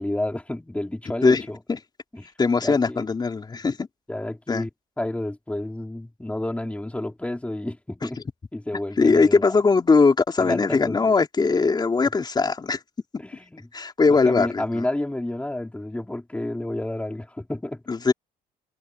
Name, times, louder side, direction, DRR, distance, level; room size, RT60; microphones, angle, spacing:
voice 1, 0.0-1.6 2.1-2.3 2.6-3.1 4.1-4.7 5.0-8.2 8.5-9.6 10.4-11.1 12.0-12.1 13.2-13.7 14.1-17.8, left 1 dB, 5° left, 4.7 m, -30 dB
voice 2, 2.4-3.9 4.5-4.6 9.0-12.8 13.7-14.9 17.9-18.1, left 4 dB, 25° left, 3.7 m, -20 dB
cardioid pair, 110°, 17 cm